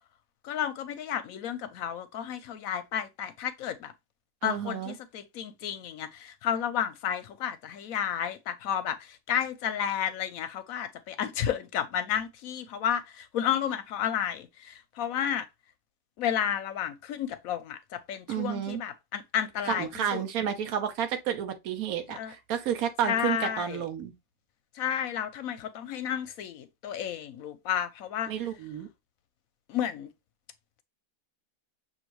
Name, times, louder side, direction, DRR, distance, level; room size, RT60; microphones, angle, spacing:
voice 1, 0.4-3.9 4.4-15.5 16.2-20.2 22.1-22.3 23.0-23.8 24.8-28.3 29.7-30.1, left 9 dB, 70° left, 0.9 m, -32 dB
voice 2, 4.4-4.9 18.3-18.8 19.7-24.1 28.3-28.9, right 9 dB, 70° right, 1.2 m, -31 dB
6.4 x 2.7 x 3.0 m
omnidirectional pair, 1.7 m